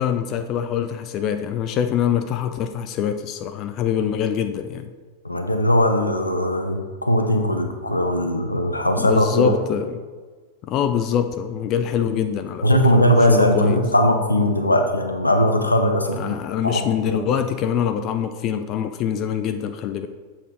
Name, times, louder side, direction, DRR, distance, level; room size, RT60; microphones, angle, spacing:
voice 1, 0.0-4.9 9.0-10.0 10.6-12.6 12.9-13.8 16.2-20.1, left 8 dB, 35° left, 8 dB, 0.4 m, -24 dB
voice 2, 5.2-9.5 12.6-16.3 16.6-16.8 17.1-17.3, equal, 85° left, 5 dB, 0.8 m, -19 dB
7.6 x 4.4 x 4.7 m, 1.4 s
figure-of-eight pair, 90°, 0 cm